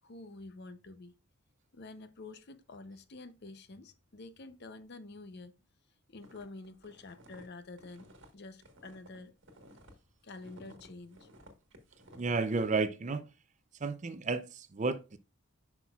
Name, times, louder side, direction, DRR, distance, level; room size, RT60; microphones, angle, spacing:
voice 1, 0.0-1.1 1.7-5.5 6.1-9.3 10.2-11.3, left 3 dB, 50° left, 0.7 m, -48 dB
sound 1, 6.2-9.9 10.3-12.5, equal, 55° right, 1.4 m, -56 dB
voice 2, 12.2-13.3 13.8-15.2, right 4 dB, 35° right, 0.5 m, -32 dB
8.1 x 5.9 x 2.4 m
head